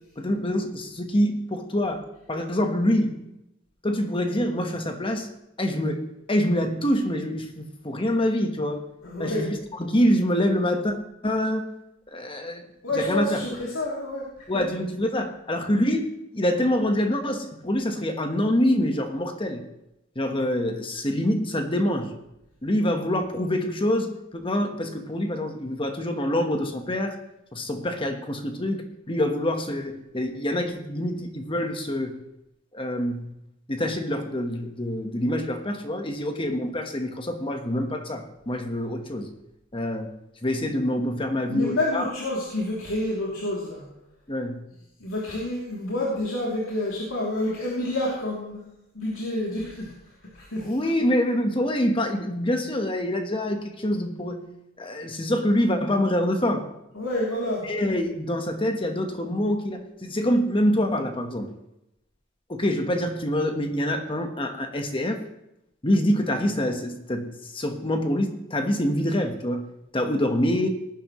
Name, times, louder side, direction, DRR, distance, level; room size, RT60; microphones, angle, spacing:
voice 1, 0.2-2.0 2.3-3.2 3.8-5.3 5.6-8.8 9.2-10.9 11.2-11.7 12.1-12.6 12.9-13.4 14.5-19.6 20.1-22.1 22.6-27.2 27.5-32.1 32.7-33.3 33.7-39.3 39.7-40.1 40.4-42.1 44.3-44.6 50.6-54.4 54.8-56.7 57.6-61.5 62.5-65.2 65.8-69.7 69.9-70.7, left 1 dB, 25° left, 5 dB, 1.3 m, -25 dB
voice 2, 9.0-9.5 12.8-14.2 14.5-14.6 41.5-43.8 45.0-48.7 48.9-49.9 50.3-50.8 56.9-57.6, left 1 dB, 90° left, -5 dB, 3.0 m, -28 dB
18.5 x 11.0 x 3.1 m, 0.86 s
head